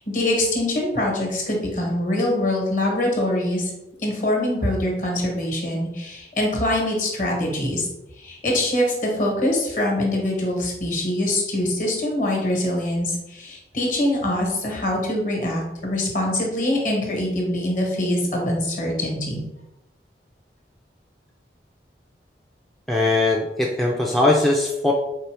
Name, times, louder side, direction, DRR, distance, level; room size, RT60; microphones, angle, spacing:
voice 1, 0.0-3.7 4.0-7.9 8.2-19.4, left 1 dB, 45° left, 0 dB, 1.2 m, -24 dB
voice 2, 22.9-24.9, left 2 dB, ahead, -2 dB, 0.3 m, -20 dB
4.3 x 3.4 x 3.3 m, 0.93 s
head